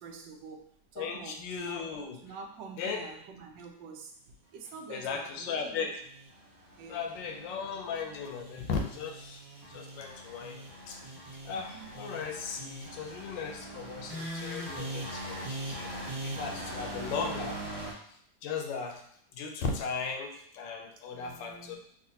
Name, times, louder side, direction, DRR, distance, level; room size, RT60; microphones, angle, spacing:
voice 1, 0.0-1.9 2.2-4.1 4.5-5.9 6.8-7.1 11.5-11.9 21.1-21.8, right 5 dB, 90° right, 3 dB, 1.3 m, -46 dB
voice 2, 1.0-2.2 2.8-3.0 4.9-6.0 6.9-9.4 9.7-11.0 11.5-15.9 16.2-17.6 18.4-19.0 19.3-21.8, left 5 dB, 85° left, 3 dB, 1.3 m, -37 dB
sound 1, 5.6-17.9, right 1 dB, 40° right, 0.5 m, -41 dB
3.8 x 2.4 x 2.7 m, 0.67 s
omnidirectional pair, 1.9 m